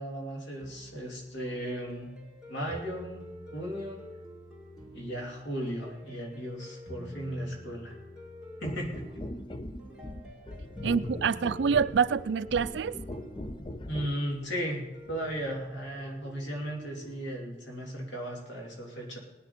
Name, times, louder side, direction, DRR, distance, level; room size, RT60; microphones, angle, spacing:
voice 1, 0.0-2.1 2.5-3.2 3.5-4.1 4.9-7.9 8.6-9.1 13.9-14.8 15.1-19.2, equal, 80° left, 3.0 m, -36 dB
sound 1, 0.6-17.3, left 1 dB, ahead, 2.9 m, -48 dB
sound 2, 8.6-14.2 15.1-15.2, left 1 dB, 25° left, 0.6 m, -40 dB
voice 2, 10.8-13.0, right 6 dB, 75° right, 0.4 m, -26 dB
19.0 x 10.0 x 4.4 m
head